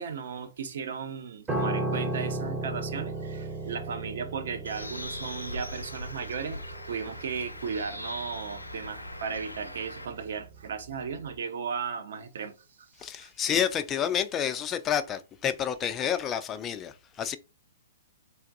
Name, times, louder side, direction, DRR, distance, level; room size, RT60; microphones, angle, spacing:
voice 1, 0.0-12.5 13.0-13.3, right 6 dB, 60° right, 0.5 m, -36 dB
Piano, 1.5-10.9 11.1-11.4, right 2 dB, 15° right, 0.6 m, -36 dB
Bird, 4.6-10.1, left 1 dB, 90° left, 0.4 m, -40 dB
voice 2, 13.0-17.4, left 9 dB, 20° left, 0.3 m, -29 dB
3.4 x 2.5 x 2.5 m
figure-of-eight pair, 115°, 0 cm